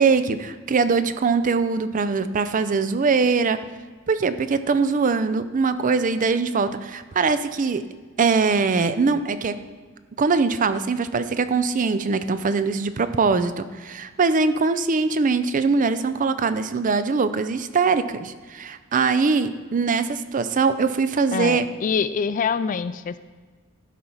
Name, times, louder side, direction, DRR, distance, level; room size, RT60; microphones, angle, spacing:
voice 1, 0.0-3.6 4.1-7.8 8.2-9.6 10.2-21.7, right 4 dB, 40° right, 12 dB, 0.5 m, -22 dB
voice 2, 21.3-23.2, left 6 dB, 40° left, 14 dB, 0.3 m, -25 dB
12.5 x 4.5 x 5.5 m, 1.5 s
head